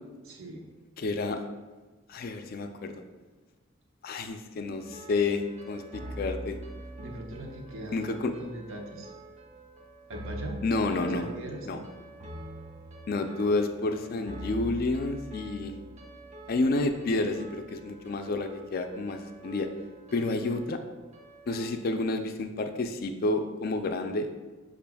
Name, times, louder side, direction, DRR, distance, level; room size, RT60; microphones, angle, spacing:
voice 1, 0.2-0.7 7.0-9.1 10.1-10.6 10.9-11.8, right 2 dB, 80° right, 1 dB, 0.7 m, -40 dB
voice 2, 1.0-1.4 2.1-2.9 4.0-6.6 7.9-8.3 10.6-11.2 11.7-11.8 13.1-15.7 16.5-19.7 20.1-20.8 21.5-24.3, left 2 dB, 45° left, 7 dB, 0.3 m, -30 dB
sound 1, 4.8-21.8, right 1 dB, 30° right, 0.5 m, -44 dB
6.0 x 2.5 x 3.4 m, 1.3 s
head